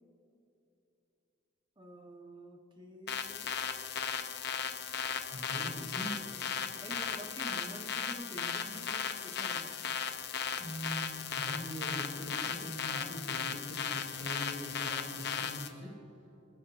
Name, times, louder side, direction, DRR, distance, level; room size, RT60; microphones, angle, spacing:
voice 1, 1.8-3.5 6.7-10.0, right 1 dB, 25° right, 3 dB, 1.0 m, -48 dB
sound 1, 3.1-15.7, left 7 dB, 55° left, 0.8 m, -36 dB
voice 2, 5.3-6.1 10.6-15.9, equal, 65° right, -3 dB, 2.6 m, -42 dB
28.5 x 13.0 x 2.5 m, 2.9 s
head